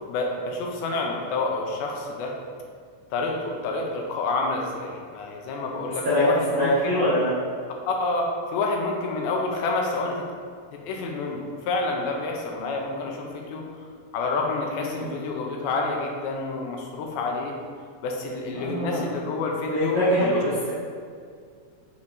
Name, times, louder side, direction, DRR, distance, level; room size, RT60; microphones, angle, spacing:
voice 1, 0.1-2.3 3.1-7.0 7.9-10.2 10.7-13.6 14.1-17.6 18.0-20.4, left 3 dB, 90° left, 1 dB, 2.7 m, -28 dB
voice 2, 6.0-7.3 14.8-15.1 18.5-19.1 19.7-20.7, equal, 85° right, -10 dB, 1.0 m, -23 dB
6.7 x 5.3 x 3.1 m, 2.1 s
omnidirectional pair, 4.2 m